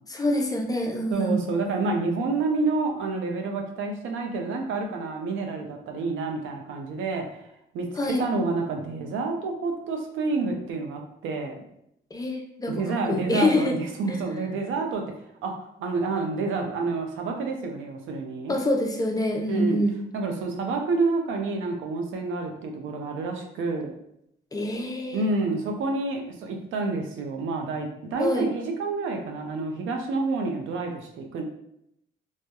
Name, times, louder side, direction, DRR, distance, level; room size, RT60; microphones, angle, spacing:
voice 1, 0.1-1.4 8.0-8.2 12.1-12.8 13.1-13.8 14.1-14.2 18.5-20.0 24.5-25.3 28.2-28.5, left 1 dB, 20° left, 2 dB, 0.4 m, -25 dB
voice 2, 1.1-7.2 7.7-11.6 12.7-15.0 15.4-15.5 15.8-18.6 19.5-19.8 20.1-23.9 25.1-31.4, right 3 dB, 80° right, 3 dB, 0.5 m, -28 dB
2.2 x 2.1 x 2.8 m, 0.76 s
cardioid pair, 85°, 20 cm